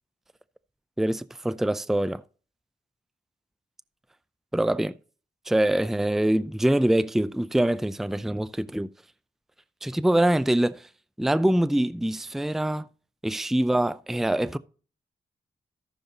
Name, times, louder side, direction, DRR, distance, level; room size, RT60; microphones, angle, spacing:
voice 1, 1.0-2.2 4.5-4.9 5.5-8.9 9.8-10.8 11.2-12.9 13.2-14.6, right 1 dB, ahead, 0.5 m, -24 dB
14.5 x 6.7 x 2.9 m
supercardioid pair, 40°, 18 cm